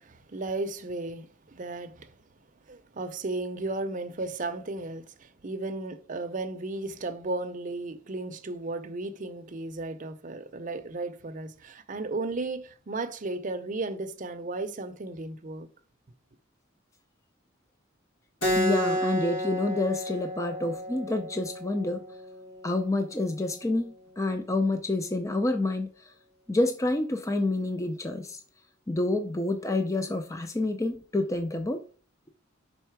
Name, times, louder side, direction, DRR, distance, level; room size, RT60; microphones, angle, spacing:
voice 1, 0.0-2.2 2.7-15.7, right 2 dB, 40° right, 0.6 m, -35 dB
Keyboard (musical), 18.4-23.5, equal, 80° left, 1.8 m, -32 dB
voice 2, 18.5-22.0 22.6-25.9 26.5-28.4 28.9-31.8, left 2 dB, 15° left, 0.5 m, -28 dB
5.6 x 4.2 x 4.6 m
head